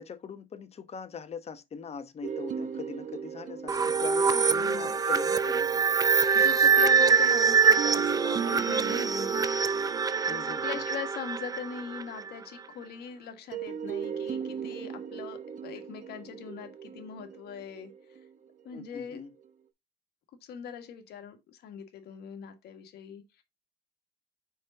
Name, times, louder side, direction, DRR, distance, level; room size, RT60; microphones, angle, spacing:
voice 1, 0.0-5.7 10.3-10.8 18.7-19.3, left 6 dB, 40° left, 1.0 m, -41 dB
sound 1, 2.2-6.1 7.6-12.1 13.5-18.7, right 8 dB, 50° right, 0.9 m, -38 dB
sound 2, 3.7-12.3, right 5 dB, 20° right, 0.5 m, -24 dB
voice 2, 4.3-5.0 6.3-9.4 10.4-18.2 18.6-19.2 20.4-23.4, left 8 dB, 70° left, 1.6 m, -41 dB
5.3 x 5.1 x 3.9 m
cardioid pair, 110°, 17 cm